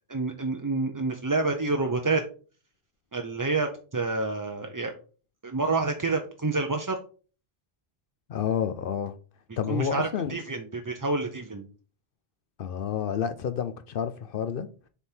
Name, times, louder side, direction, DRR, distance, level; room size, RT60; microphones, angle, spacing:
voice 1, 0.1-2.2 3.1-4.9 5.4-7.0 9.7-11.7, right 3 dB, 30° right, 0.4 m, -28 dB
voice 2, 8.3-9.1 9.6-10.4 12.6-14.7, left 8 dB, 65° left, 0.7 m, -29 dB
7.1 x 3.5 x 4.4 m
omnidirectional pair, 1.1 m